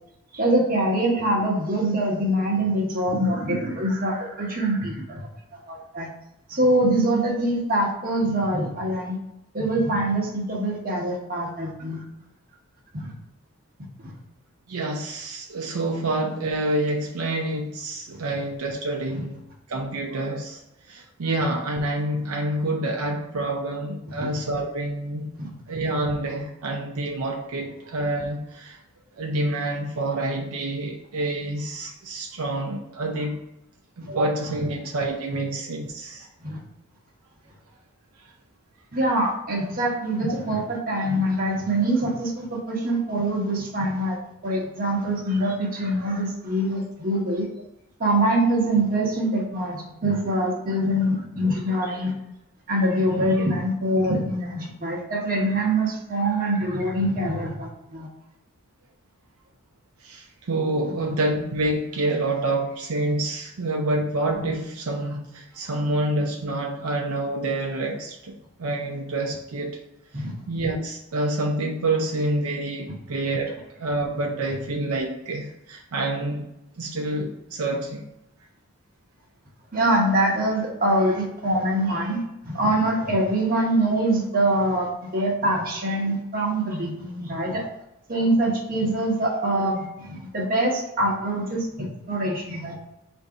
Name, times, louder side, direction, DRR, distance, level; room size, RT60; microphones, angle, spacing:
voice 1, 0.3-5.3 5.7-6.1 6.5-9.2 9.5-12.0 12.9-13.1 14.0-14.1 19.1-19.2 24.1-24.3 25.4-25.5 36.4-36.6 38.9-44.2 44.4-47.5 48.0-52.1 52.7-58.1 70.1-70.3 79.7-87.7 88.1-92.7, right 1 dB, 40° right, -1 dB, 1.0 m, -24 dB
voice 2, 14.7-19.4 19.7-20.6 20.9-25.3 25.7-28.8 29.2-33.4 34.0-36.3 60.0-68.3 68.6-69.8 70.5-76.5 76.8-78.1, right 2 dB, 75° right, 1 dB, 0.5 m, -27 dB
4.0 x 2.6 x 4.7 m, 0.88 s
head